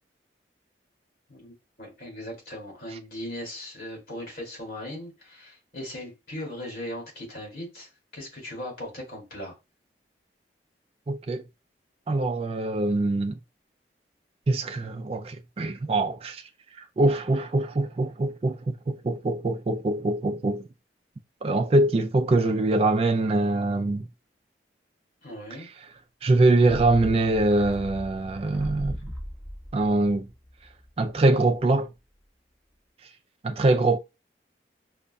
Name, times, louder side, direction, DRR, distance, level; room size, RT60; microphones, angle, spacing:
voice 1, 1.8-9.5 25.2-25.7, left 1 dB, 55° left, 2.2 m, -38 dB
voice 2, 11.1-11.4 12.1-13.4 14.5-16.4 16.8-20.7 21.4-24.1 26.2-29.1 29.7-30.3 31.0-31.9 33.4-34.0, right 2 dB, 35° right, 0.3 m, -23 dB
sound 1, 26.6-31.2 31.5-31.6, equal, ahead, 1.4 m, -38 dB
5.2 x 2.4 x 2.2 m
head